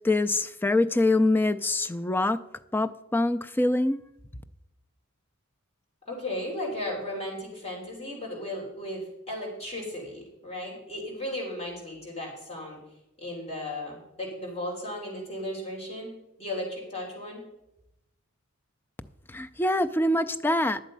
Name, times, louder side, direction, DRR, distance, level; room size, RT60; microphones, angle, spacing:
voice 1, 0.0-2.4 2.7-4.0 19.3-20.8, left 2 dB, 10° left, 0.4 m, -24 dB
voice 2, 6.1-12.8 13.2-16.1 16.4-17.4, left 1 dB, 30° left, 3.6 m, -35 dB
11.5 x 7.3 x 5.3 m
head